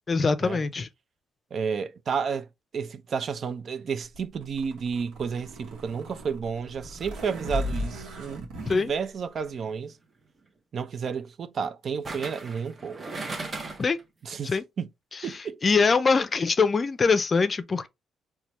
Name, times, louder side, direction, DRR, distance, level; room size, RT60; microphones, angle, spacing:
voice 1, 0.1-0.9 8.7-8.9 13.8-14.0 14.4-14.6 15.6-17.9, left 4 dB, 35° left, 0.4 m, -23 dB
voice 2, 1.5-2.5 2.7-10.0 10.7-13.0 14.2-14.9 15.2-15.6, right 6 dB, 55° right, 0.4 m, -31 dB
sound 1, 4.1-8.8, equal, 85° right, 1.0 m, -36 dB
sound 2, 9.4-9.7 12.0-14.0 14.4-14.5, right 3 dB, 35° right, 0.8 m, -37 dB
4.3 x 2.3 x 2.9 m
cardioid pair, 90°, 0 cm